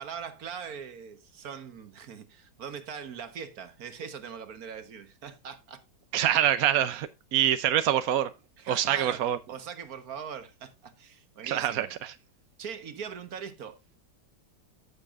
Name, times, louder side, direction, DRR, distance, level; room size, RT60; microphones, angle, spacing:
voice 1, 0.0-5.8 8.6-12.0 12.6-14.0, right 7 dB, 50° right, 1.5 m, -41 dB
voice 2, 6.1-8.3 8.7-9.4 11.4-12.1, right 11 dB, 65° right, 0.9 m, -25 dB
14.5 x 6.8 x 2.5 m
omnidirectional pair, 2.2 m